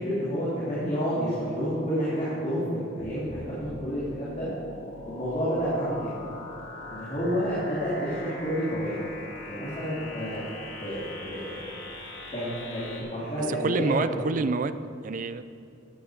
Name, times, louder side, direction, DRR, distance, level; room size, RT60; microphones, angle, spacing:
voice 1, 0.0-4.5 5.1-6.2 6.9-9.0 9.5-10.5 10.8-11.7 12.3-14.3, equal, 40° left, -10 dB, 3.2 m, -30 dB
sound 1, 3.0-13.0, left 2 dB, 85° left, 2.0 m, -41 dB
voice 2, 13.5-14.7 15.0-15.4, right 4 dB, 45° right, 13 dB, 0.4 m, -27 dB
13.0 x 9.7 x 5.1 m, 2.5 s
head